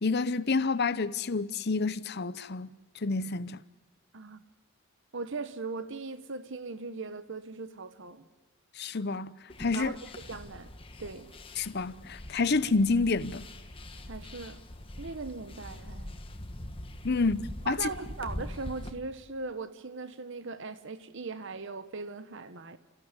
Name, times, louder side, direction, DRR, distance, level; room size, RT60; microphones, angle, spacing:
voice 1, 0.0-2.7 3.0-3.6 8.8-9.3 9.6-10.0 11.6-13.5 17.0-17.9, left 3 dB, 50° left, 0.7 m, -28 dB
voice 2, 5.1-8.3 9.7-10.0 10.3-10.7 11.0-11.3 14.1-14.6 15.0-16.2 17.6-22.8, right 3 dB, 60° right, 1.0 m, -39 dB
sound 1, 9.5-18.9, left 1 dB, 25° left, 1.5 m, -43 dB
28.5 x 15.5 x 9.7 m
head